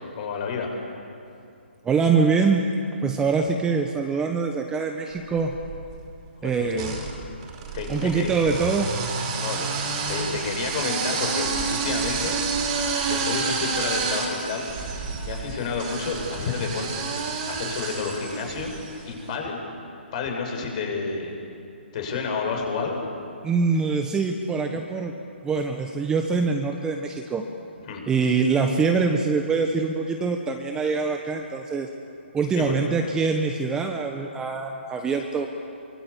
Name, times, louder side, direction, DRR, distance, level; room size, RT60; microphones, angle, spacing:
voice 1, 0.1-0.7 6.4-6.7 7.7-8.3 9.4-9.7 10.1-12.4 12.7-14.7 15.2-17.1 17.5-18.7 19.1-19.6 20.1-21.3 21.9-23.0 27.9-28.0 32.6-32.8, left 4 dB, 40° left, 2 dB, 6.7 m, -30 dB
voice 2, 1.8-2.6 3.0-5.6 6.4-7.0 7.9-8.9 23.4-25.1 25.4-27.4 28.1-31.9 32.3-35.5, right 4 dB, 10° right, 4 dB, 1.3 m, -24 dB
sound 1, 5.4-6.0 6.7-19.0, right 4 dB, 30° right, 4.9 m, -29 dB
26.0 x 24.0 x 8.5 m, 2.6 s
hypercardioid pair, 150°, 6 cm